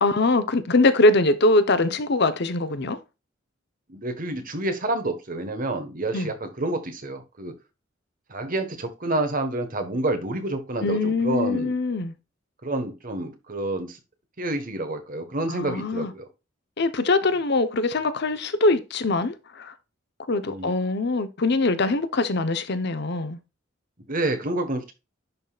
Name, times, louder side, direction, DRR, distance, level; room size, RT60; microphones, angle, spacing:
voice 1, 0.0-3.0 6.1-6.3 10.8-12.1 15.5-16.1 16.8-19.7 20.3-23.4, left 2 dB, 55° left, 0.8 m, -22 dB
voice 2, 3.9-7.5 8.3-11.7 12.6-14.0 14.4-16.3 20.4-20.7 24.1-24.9, right 2 dB, 45° right, 1.4 m, -28 dB
11.0 x 4.0 x 2.4 m
head